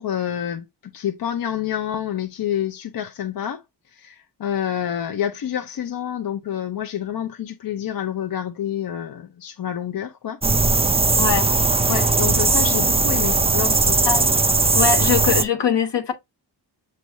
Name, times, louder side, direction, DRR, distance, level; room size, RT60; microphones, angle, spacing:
voice 1, 0.0-10.4 11.9-14.1 15.0-15.1, left 10 dB, 55° left, 0.5 m, -28 dB
sound 1, 10.4-15.4, right 3 dB, 15° right, 0.3 m, -18 dB
voice 2, 14.7-16.1, left 7 dB, 70° left, 1.1 m, -22 dB
6.1 x 3.3 x 2.5 m
wide cardioid pair, 95°, 44 cm